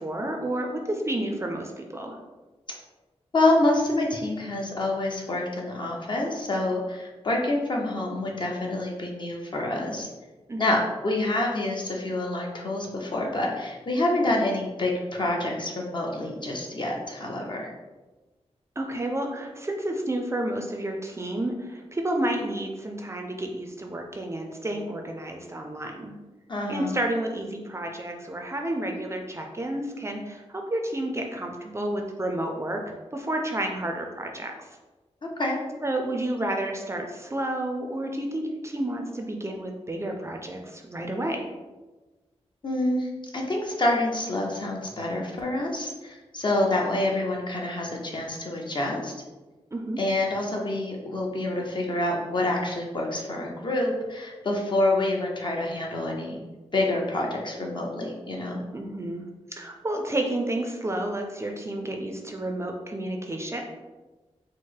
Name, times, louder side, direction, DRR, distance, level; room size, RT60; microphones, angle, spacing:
voice 1, 0.0-2.2 10.5-10.8 18.8-26.1 26.7-34.5 35.8-41.4 49.7-50.0 58.7-59.2 59.5-63.6, right 1 dB, 25° right, 2 dB, 0.4 m, -30 dB
voice 2, 3.3-10.1 10.6-17.7 26.5-26.9 35.2-35.6 42.6-49.1 50.0-56.4 56.7-58.6, left 2 dB, 45° left, -1 dB, 0.8 m, -27 dB
4.4 x 2.1 x 4.6 m, 1.2 s
wide cardioid pair, 135°, 11 cm